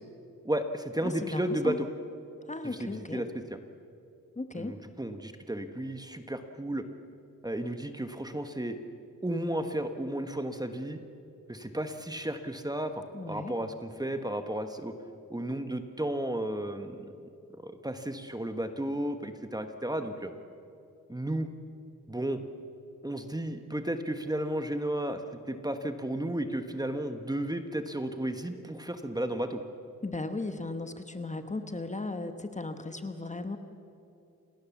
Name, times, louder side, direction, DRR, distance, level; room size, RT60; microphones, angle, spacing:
voice 1, 0.4-1.9 2.6-3.6 4.5-6.8 7.4-8.8 9.2-11.0 11.5-14.9 15.3-17.1 17.6-20.3 21.1-21.5 22.1-22.4 23.0-25.2 25.5-29.6, right 1 dB, 10° right, 7 dB, 1.3 m, -33 dB
voice 2, 1.0-1.8 2.5-3.2 4.4-4.8 13.1-13.5 30.0-33.6, left 2 dB, 20° left, 8 dB, 1.3 m, -36 dB
27.5 x 19.0 x 7.2 m, 2.6 s
wide cardioid pair, 105°, 32 cm